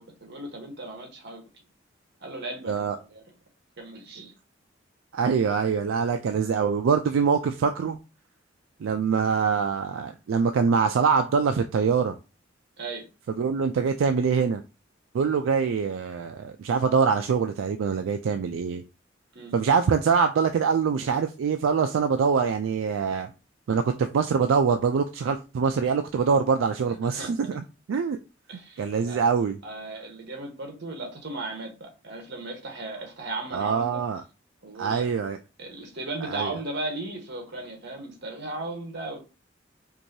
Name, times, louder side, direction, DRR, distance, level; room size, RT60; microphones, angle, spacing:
voice 1, 0.0-1.4 2.2-3.2 3.8-4.3 12.8-13.1 19.3-19.5 26.9-27.6 28.5-29.2 29.6-34.0 34.6-35.1 35.6-39.2, right 2 dB, 60° right, 1.2 m, -36 dB
voice 2, 5.1-8.0 8.8-12.2 13.3-14.6 15.1-18.8 19.5-23.3 23.7-28.2 28.8-29.6 33.5-34.2 34.8-35.4 36.2-36.6, right 6 dB, 85° right, 0.3 m, -24 dB
4.6 x 2.6 x 2.7 m
head